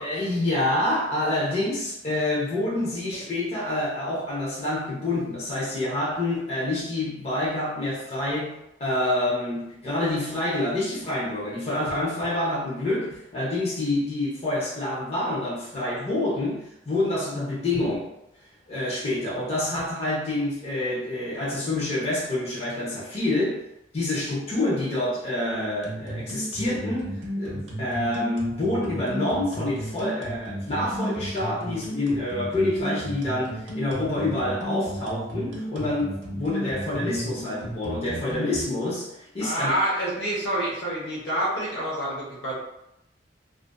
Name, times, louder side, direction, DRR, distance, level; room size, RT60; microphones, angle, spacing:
voice 1, 0.0-18.1 18.7-23.6 23.9-39.8, left 1 dB, 35° left, -7 dB, 0.6 m, -27 dB
sound 1, 25.8-38.7, equal, 85° right, 0.6 m, -34 dB
voice 2, 39.4-42.5, right 1 dB, 85° left, -6 dB, 0.9 m, -27 dB
2.4 x 2.4 x 2.2 m, 0.84 s
head